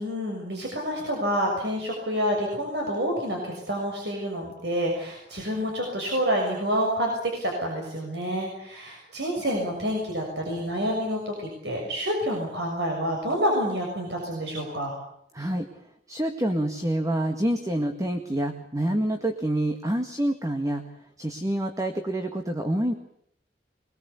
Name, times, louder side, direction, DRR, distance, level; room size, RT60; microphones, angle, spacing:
voice 1, 0.0-14.9, equal, 75° right, 0 dB, 6.5 m, -28 dB
voice 2, 15.3-15.7 16.1-20.8 21.2-22.9, right 1 dB, 20° right, 6 dB, 1.9 m, -27 dB
24.0 x 21.5 x 8.4 m, 0.70 s
head